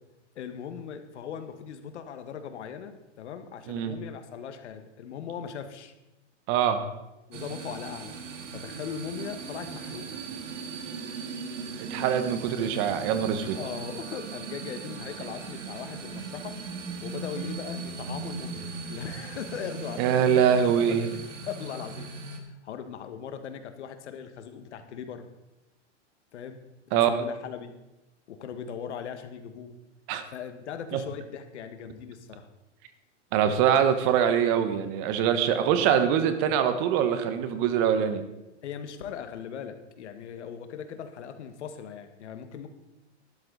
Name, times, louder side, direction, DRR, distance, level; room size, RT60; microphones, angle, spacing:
voice 1, 0.3-5.9 7.3-8.1 8.5-10.2 13.4-16.6 17.0-20.2 20.6-25.2 26.3-26.6 26.9-27.7 28.3-29.8 30.3-32.5 38.6-42.7, left 7 dB, 70° left, 8 dB, 1.6 m, -39 dB
voice 2, 6.5-6.8 11.8-13.6 20.0-21.0 26.9-27.1 30.1-30.2 30.9-31.0 33.3-38.2, right 8 dB, 30° right, 10 dB, 1.1 m, -23 dB
sound 1, 7.3-22.4, right 4 dB, 85° right, 2.0 m, -38 dB
12.5 x 11.5 x 4.0 m, 0.97 s
hypercardioid pair, 155°, 36 cm